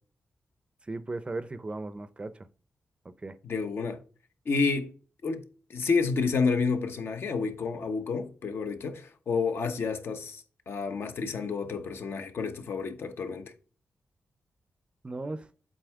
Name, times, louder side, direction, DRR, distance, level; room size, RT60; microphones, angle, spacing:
voice 1, 0.8-2.5 3.2-3.4 15.0-15.5, right 2 dB, 25° right, 0.5 m, -36 dB
voice 2, 3.4-4.0 4.4-4.9 5.2-5.4 5.7-13.5, left 4 dB, 65° left, 1.0 m, -30 dB
7.8 x 4.4 x 3.5 m
wide cardioid pair, 100°, 4 cm